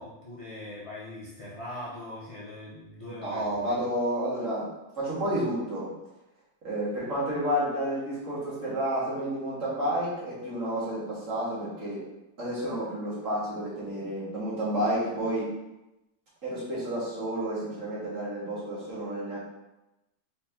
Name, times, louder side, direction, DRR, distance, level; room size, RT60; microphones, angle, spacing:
voice 1, 0.0-3.8, left 1 dB, 50° left, -8 dB, 0.4 m, -41 dB
voice 2, 3.1-5.9 6.6-12.0 12.4-15.5 16.4-19.4, right 1 dB, 45° right, -8 dB, 2.0 m, -30 dB
4.4 x 4.3 x 2.8 m, 0.96 s
omnidirectional pair, 2.0 m